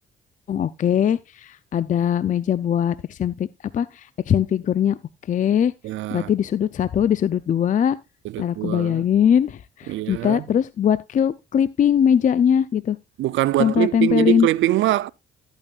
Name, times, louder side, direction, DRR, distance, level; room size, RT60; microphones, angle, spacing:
voice 1, 0.5-3.5 3.7-5.0 5.3-5.7 6.1-8.0 8.4-13.0 13.6-14.5, left 9 dB, 40° left, 0.4 m, -21 dB
voice 2, 5.8-6.3 8.2-9.0 9.9-10.4 13.2-15.1, right 14 dB, 75° right, 0.4 m, -23 dB
12.5 x 8.9 x 2.4 m
cardioid pair, 90°, 20 cm